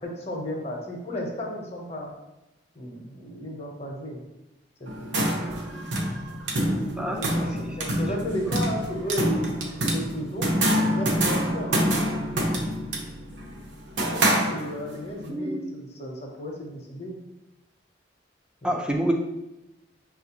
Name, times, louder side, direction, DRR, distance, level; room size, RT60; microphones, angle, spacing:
voice 1, 0.0-2.1 2.7-4.2 4.8-5.6 7.0-9.5 9.9-10.5 10.9-11.9 14.1-17.1 18.6-18.9, equal, 35° left, 0 dB, 0.7 m, -34 dB
sound 1, 4.9-15.0, right 1 dB, 75° right, 0.7 m, -26 dB
voice 2, 7.0-7.4 15.3-15.6 18.6-19.1, right 1 dB, 5° right, 1 dB, 0.3 m, -27 dB
5.9 x 2.4 x 2.8 m, 0.97 s
head